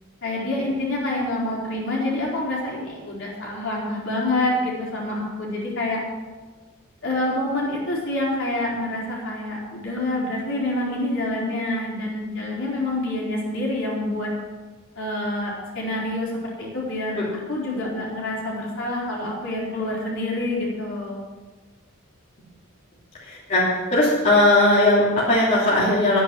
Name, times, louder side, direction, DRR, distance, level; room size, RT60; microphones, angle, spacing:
voice 1, 0.2-6.0 7.0-14.3 15.0-16.3 16.6-17.2 17.5-21.2, left 1 dB, 60° left, -4 dB, 4.4 m, -27 dB
voice 2, 23.2-23.6 23.9-26.2, left 2 dB, 35° left, -8 dB, 3.3 m, -18 dB
12.0 x 9.9 x 6.2 m, 1.3 s
head